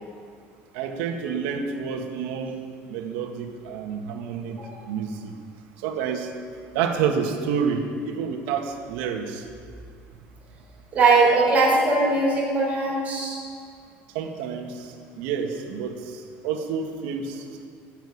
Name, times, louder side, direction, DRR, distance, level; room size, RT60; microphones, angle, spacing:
voice 1, 0.7-2.6 2.9-5.3 5.8-6.3 6.7-9.5 14.1-17.7, right 6 dB, 90° right, 3 dB, 1.9 m, -29 dB
voice 2, 10.9-13.4, right 3 dB, 30° right, -4 dB, 4.3 m, -20 dB
15.0 x 8.2 x 9.7 m, 2.2 s
cardioid pair, 165°, 5 cm